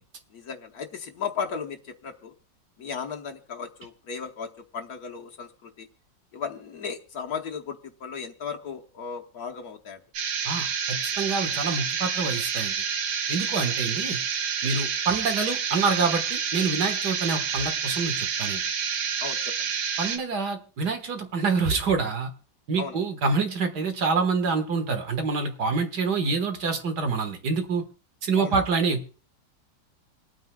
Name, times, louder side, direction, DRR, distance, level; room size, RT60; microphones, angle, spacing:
voice 1, 0.3-2.3 2.8-5.9 6.3-10.0 13.5-13.6 19.2-19.7 22.8-23.0 28.3-28.6, left 6 dB, 60° left, 3 dB, 1.4 m, -35 dB
sound 1, 10.1-20.2, right 6 dB, 80° right, 1.8 m, -29 dB
voice 2, 10.5-12.8 13.3-14.2 14.6-18.6 20.0-22.3 22.7-27.8 28.2-29.1, right 4 dB, 60° right, 7 dB, 2.0 m, -26 dB
27.0 x 9.3 x 2.2 m, 0.36 s
omnidirectional pair, 2.0 m